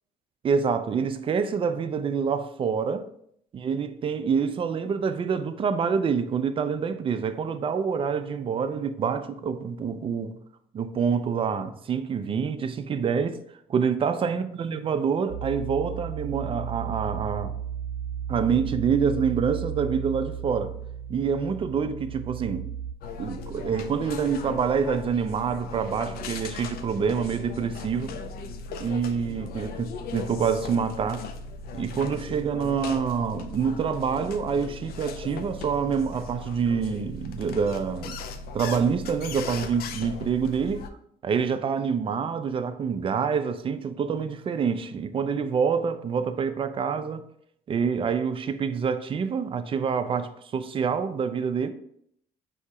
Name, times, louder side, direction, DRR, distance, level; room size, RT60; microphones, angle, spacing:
voice 1, 0.4-3.1 3.5-10.4 10.7-13.4 13.7-17.5 18.3-20.7 21.1-22.7 23.2-28.2 28.8-31.2 31.7-38.2 38.5-40.8 41.2-47.2 47.7-51.7, right 6 dB, 30° right, 0.4 m, -26 dB
sound 1, 15.3-22.9, right 9 dB, 50° right, 1.0 m, -34 dB
sound 2, 23.0-40.9, left 3 dB, 65° left, 0.4 m, -38 dB
4.5 x 2.8 x 3.7 m
cardioid pair, 110°, 17 cm